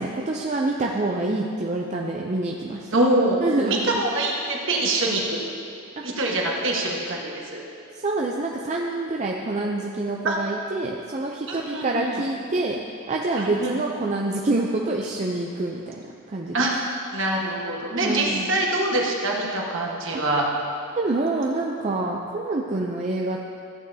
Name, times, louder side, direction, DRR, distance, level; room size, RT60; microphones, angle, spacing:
voice 1, 0.0-2.9 3.4-4.0 6.0-6.1 8.0-12.8 13.1-16.7 18.0-18.5 20.1-20.2 20.9-23.4, right 2 dB, 30° right, -1 dB, 0.5 m, -26 dB
voice 2, 2.9-3.4 3.6-5.4 6.0-7.6 10.2-10.4 11.5-12.2 13.4-13.8 16.5-16.7 17.1-20.4, right 2 dB, 60° right, -2 dB, 1.4 m, -24 dB
13.5 x 9.0 x 2.8 m, 2.4 s
head